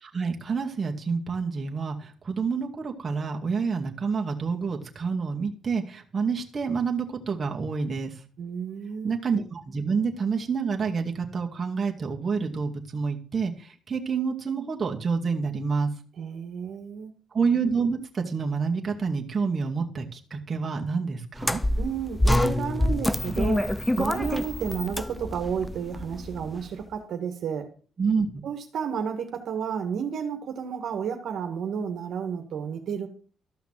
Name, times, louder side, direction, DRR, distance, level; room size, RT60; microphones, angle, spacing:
voice 1, 0.0-8.1 9.0-15.9 17.3-21.6 28.0-28.4, right 5 dB, 35° right, 2.3 m, -28 dB
voice 2, 8.4-9.2 16.2-17.1 21.8-23.7 24.0-27.7 28.4-33.1, right 7 dB, 65° right, 2.0 m, -31 dB
sound 1, 21.4-26.6, left 1 dB, 10° left, 0.7 m, -26 dB
13.5 x 5.8 x 7.6 m
cardioid pair, 90°, 0 cm